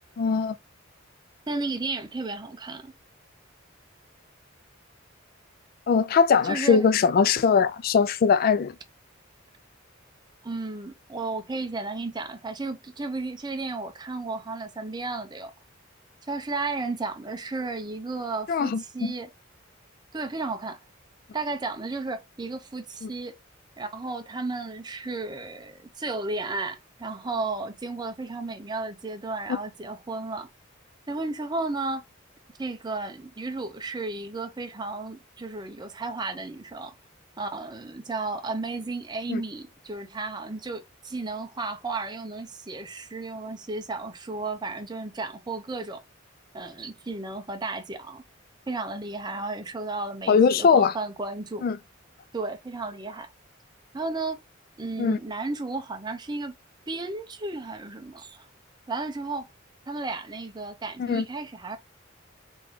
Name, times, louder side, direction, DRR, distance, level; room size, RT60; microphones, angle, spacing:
voice 1, 0.2-0.6 5.9-8.7 18.5-19.1 23.0-23.1 39.3-39.4 50.3-50.9 51.6-51.8 55.0-55.2 61.0-61.3, left 6 dB, 45° left, 0.3 m, -21 dB
voice 2, 1.5-2.9 6.4-6.9 10.4-15.5 16.3-19.3 20.1-20.8 21.3-23.3 23.8-30.5 31.1-32.0 32.6-36.9 37.4-46.0 46.5-48.2 48.7-51.7 52.3-53.3 53.9-54.4 54.8-56.5 56.9-58.5 58.9-59.5 59.9-61.8, right 3 dB, 20° right, 0.7 m, -33 dB
3.8 x 3.6 x 3.1 m
head